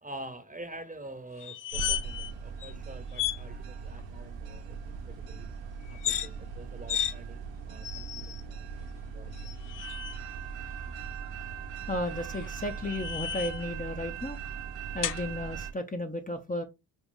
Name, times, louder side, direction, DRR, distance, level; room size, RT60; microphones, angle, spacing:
voice 1, 0.0-5.5 5.9-9.5, right 1 dB, 15° right, 1.0 m, -46 dB
sound 1, 1.4-2.3 2.6-2.7 3.1-3.4 5.9-6.3 6.9-7.1 7.8-8.4 9.4-10.2 12.1-13.7 15.0-15.2, left 11 dB, 45° left, 0.5 m, -34 dB
sound 2, 1.7-15.7, right 6 dB, 70° right, 0.9 m, -40 dB
voice 2, 11.9-14.4 14.9-16.6, left 1 dB, 20° left, 0.7 m, -34 dB
5.4 x 2.3 x 3.6 m
supercardioid pair, 50°, 46 cm